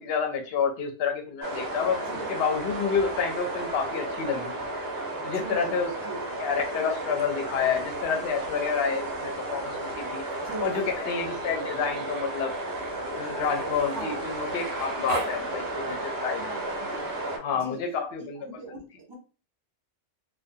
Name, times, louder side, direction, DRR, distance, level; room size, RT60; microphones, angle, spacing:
voice 1, 0.0-4.5 5.2-5.9 6.4-10.2 10.6-12.5 12.9-16.5 17.3-18.5, left 6 dB, 60° left, 5 dB, 0.7 m, -29 dB
sound 1, 1.4-17.4, right 2 dB, 60° right, 0.8 m, -33 dB
voice 2, 2.0-2.4 5.1-6.2 10.4-10.9 13.9-14.3 16.4-17.0 17.5-19.1, right 3 dB, 30° right, -1 dB, 0.5 m, -41 dB
Human voice, 8.7-9.5 9.8-15.4 17.0-17.1, right 5 dB, 85° right, 1.1 m, -42 dB
2.5 x 2.1 x 2.5 m, 0.36 s
omnidirectional pair, 1.3 m